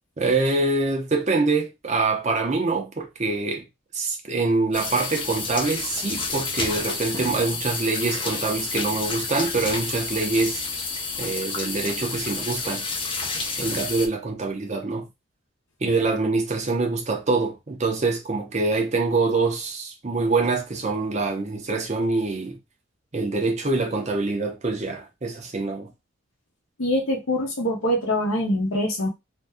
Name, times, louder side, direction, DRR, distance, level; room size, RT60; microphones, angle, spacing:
voice 1, 0.2-3.7 3.9-10.6 11.2-12.8 13.6-15.1 15.8-22.6 23.1-25.9, right 3 dB, 35° right, 0.6 m, -25 dB
sound 1, 4.7-14.1, left 4 dB, 25° left, 0.4 m, -30 dB
voice 2, 26.8-29.1, equal, 85° left, 0.9 m, -24 dB
2.7 x 2.2 x 3.4 m
head